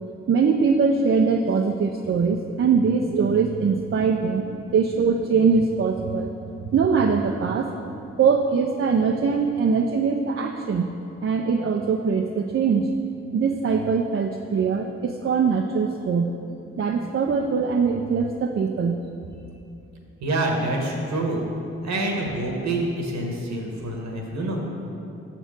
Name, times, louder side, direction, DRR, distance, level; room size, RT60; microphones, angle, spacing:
voice 1, 0.3-6.3 6.6-7.7 8.2-10.9 11.2-12.9 13.3-16.3 16.8-19.0, right 5 dB, 45° right, 3 dB, 0.5 m, -22 dB
voice 2, 20.2-21.4 21.8-24.7, right 2 dB, 70° right, 1 dB, 1.3 m, -26 dB
6.7 x 4.4 x 6.2 m, 2.7 s
supercardioid pair, 45°, 29 cm